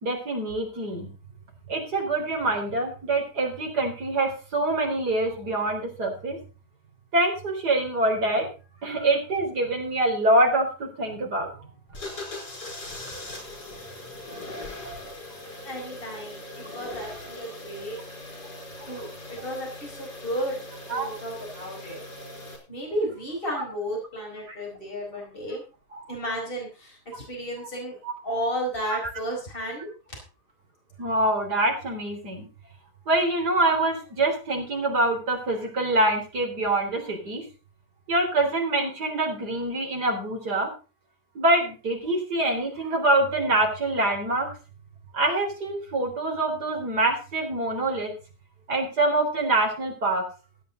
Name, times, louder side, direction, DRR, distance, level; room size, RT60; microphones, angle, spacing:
voice 1, 0.0-1.1 1.7-6.4 7.1-8.5 8.8-11.5 20.9-21.1 23.5-23.6 24.5-24.6 25.9-26.1 28.0-28.1 28.9-29.0 31.0-32.5 33.1-37.4 38.1-40.7 41.3-44.5 45.1-48.1 48.7-50.2, right 2 dB, 85° right, 1 dB, 4.5 m, -25 dB
sound 1, 11.9-22.6, left 1 dB, 90° left, 5.0 m, -40 dB
voice 2, 15.6-18.0 18.3-18.4 18.9-22.0 22.7-25.6 26.1-28.0 28.2-29.9, equal, 35° left, -1 dB, 4.9 m, -33 dB
16.0 x 9.2 x 4.0 m, 0.34 s
omnidirectional pair, 1.7 m